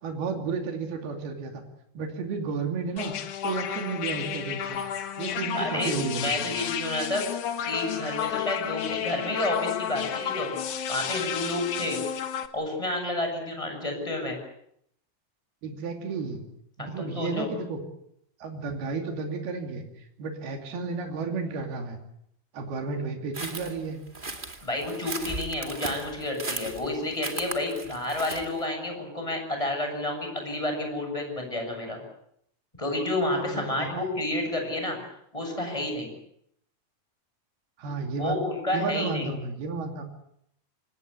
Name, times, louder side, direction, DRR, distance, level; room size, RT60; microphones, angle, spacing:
voice 1, 0.0-1.6 2.0-3.1 3.4-4.8 5.2-6.5 15.6-16.4 16.8-17.8 18.4-19.8 20.2-22.0 22.5-24.0 33.3-34.1 37.8-38.4 38.7-40.0, right 4 dB, 85° right, 4 dB, 4.6 m, -32 dB
sound 1, 3.0-12.5, left 9 dB, 60° left, 2.6 m, -32 dB
voice 2, 5.5-5.9 6.2-7.2 7.6-10.5 10.9-12.0 12.5-14.4 16.8-17.5 24.6-32.0 32.8-35.0 35.3-36.1 38.2-39.3, left 1 dB, 10° left, 3 dB, 7.5 m, -30 dB
sound 2, 23.3-28.6, right 2 dB, 20° right, 1.8 m, -37 dB
26.5 x 20.0 x 8.4 m, 0.74 s
omnidirectional pair, 4.3 m